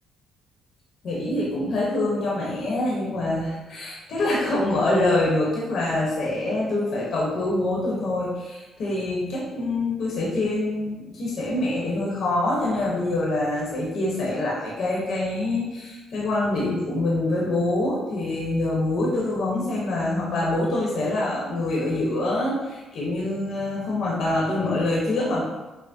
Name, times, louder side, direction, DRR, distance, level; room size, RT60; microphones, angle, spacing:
voice 1, 1.0-25.4, left 2 dB, 65° left, -5 dB, 0.9 m, -25 dB
5.7 x 2.1 x 2.6 m, 1.1 s
cardioid pair, 90°, 0 cm